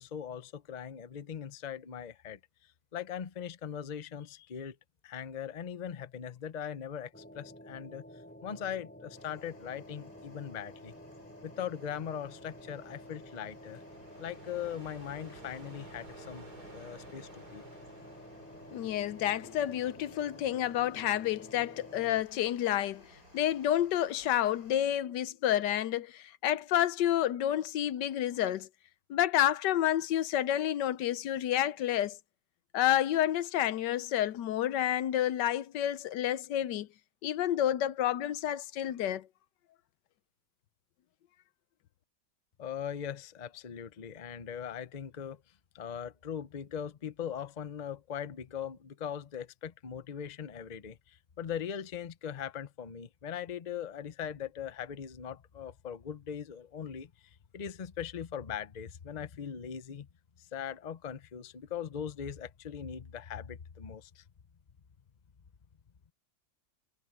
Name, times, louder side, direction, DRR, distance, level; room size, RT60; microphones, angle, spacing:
voice 1, 0.0-2.4 2.9-4.8 5.0-8.0 8.4-10.9 11.4-13.8 14.2-16.5 16.7-17.6 42.6-45.4 45.7-57.1 57.5-60.1 60.5-64.2, left 8 dB, 35° left, 0.7 m, -40 dB
sound 1, 7.1-22.2, equal, 5° left, 3.5 m, -51 dB
sound 2, 9.2-25.0, left 1 dB, 55° left, 6.9 m, -60 dB
sound 3, 11.7-23.7, right 2 dB, 65° right, 6.0 m, -56 dB
voice 2, 18.7-23.0 23.3-28.7 29.1-32.2 32.7-36.9 37.2-39.3, left 12 dB, 80° left, 1.3 m, -29 dB
omnidirectional pair, 1.8 m